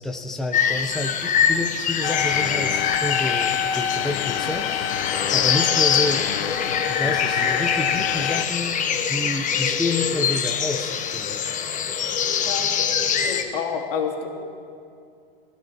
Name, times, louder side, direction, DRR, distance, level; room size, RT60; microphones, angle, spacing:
voice 1, 0.0-4.9 5.3-6.6 6.9-8.8 9.1-11.5, left 2 dB, ahead, 3 dB, 0.8 m, -29 dB
sound 1, 0.5-13.4, left 7 dB, 25° left, 1.3 m, -24 dB
sound 2, 2.0-8.4, left 9 dB, 80° left, 0.7 m, -27 dB
voice 2, 13.2-14.3, left 6 dB, 65° left, -1 dB, 2.7 m, -28 dB
26.0 x 15.5 x 3.0 m, 2.4 s
hypercardioid pair, 105°, 30 cm